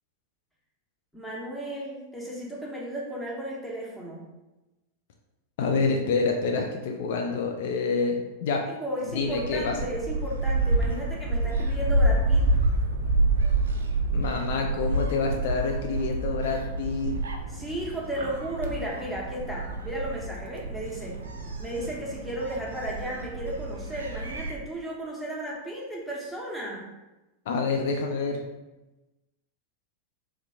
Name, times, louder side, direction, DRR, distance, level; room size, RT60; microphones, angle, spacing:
voice 1, 1.1-4.3 8.6-12.4 17.5-21.2 21.6-26.9, right 1 dB, ahead, -4 dB, 1.0 m, -34 dB
voice 2, 5.6-8.7 9.1-9.7 14.1-17.2 27.5-28.4, left 4 dB, 55° left, 2 dB, 0.4 m, -27 dB
Gull seagull, 9.1-24.5, right 2 dB, 65° right, 0.5 m, -28 dB
3.4 x 2.8 x 3.5 m, 1.0 s
figure-of-eight pair, 90°, 0 cm